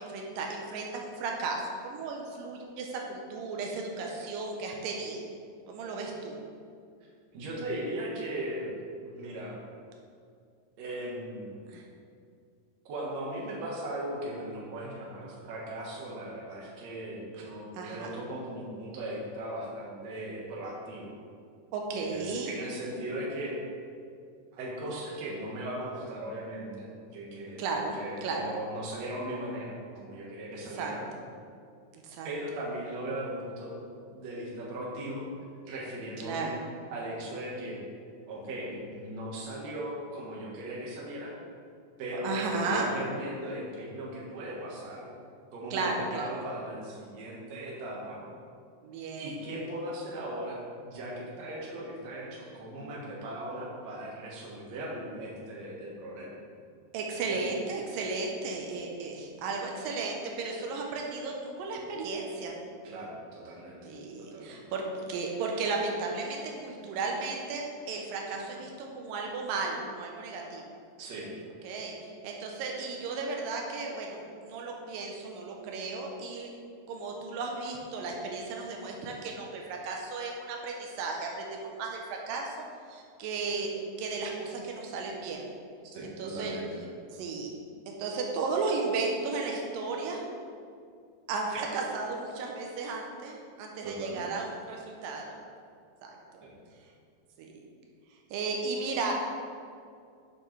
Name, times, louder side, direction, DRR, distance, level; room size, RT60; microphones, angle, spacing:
voice 1, 0.0-5.2 5.7-6.4 11.7-11.8 17.7-18.1 21.7-22.5 27.6-28.5 30.5-31.2 32.0-32.3 36.2-36.6 42.2-42.9 45.7-46.4 48.8-49.4 56.9-62.5 63.9-68.7 69.0-70.6 71.6-71.9 72.2-76.5 76.9-81.5 81.8-82.6 82.9-83.7 84.0-85.5 86.2-86.6 87.1-87.5 87.9-90.2 91.3-95.4 96.0-96.4 97.4-97.6 98.3-99.1, right 3 dB, 90° right, 0 dB, 2.6 m, -34 dB
voice 2, 7.3-8.7 9.0-9.6 10.8-11.6 12.9-21.1 22.0-23.6 24.5-31.0 32.2-33.8 34.1-35.3 35.7-36.5 36.9-37.8 38.3-41.3 42.0-45.1 45.5-48.2 49.2-56.3 57.1-57.4 62.8-64.7 71.0-71.3 85.9-86.8 93.8-94.4 96.4-96.5, right 1 dB, 60° right, -4 dB, 2.4 m, -38 dB
8.9 x 6.8 x 3.2 m, 2.3 s
omnidirectional pair, 3.9 m